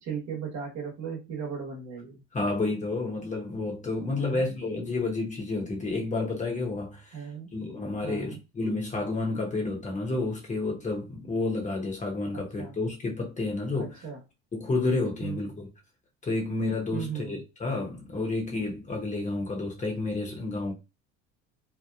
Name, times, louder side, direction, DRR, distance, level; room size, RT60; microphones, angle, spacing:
voice 1, 0.0-2.2 4.2-4.6 7.1-7.5 8.0-8.4 12.3-12.8 13.7-14.2 15.2-15.5 16.9-17.4, right 6 dB, 55° right, 1.1 m, -37 dB
voice 2, 2.3-7.3 7.5-14.0 14.5-15.7 16.2-20.7, left 3 dB, 20° left, 0.9 m, -30 dB
2.8 x 2.1 x 2.3 m
supercardioid pair, 105°, 34 cm